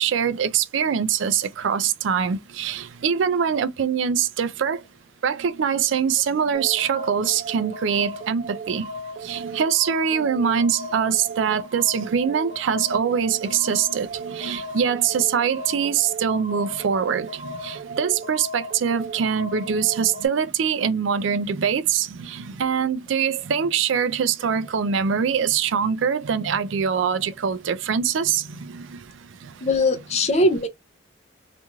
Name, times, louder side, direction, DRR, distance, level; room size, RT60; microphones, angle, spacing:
voice 1, 0.0-4.8 5.2-8.9 9.2-28.8, right 7 dB, 75° right, 0.4 m, -23 dB
sound 1, 6.5-20.3, right 2 dB, 40° right, 0.6 m, -36 dB
voice 2, 29.6-30.7, left 2 dB, 35° left, 0.5 m, -20 dB
3.0 x 2.5 x 2.3 m
head